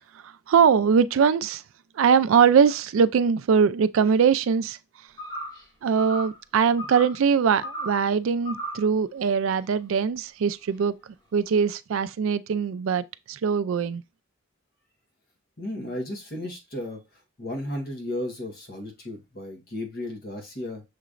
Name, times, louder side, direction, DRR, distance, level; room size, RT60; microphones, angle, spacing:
voice 1, 0.2-1.6 2.0-4.8 5.8-10.9 11.3-14.0, right 6 dB, 80° right, 0.3 m, -22 dB
sound 1, 5.2-5.6 6.0-6.4 6.8-7.2 7.6-8.0 8.4-8.9, right 1 dB, 20° left, 1.4 m, -35 dB
voice 2, 15.6-20.8, left 1 dB, 45° left, 1.2 m, -34 dB
6.6 x 2.9 x 2.5 m
head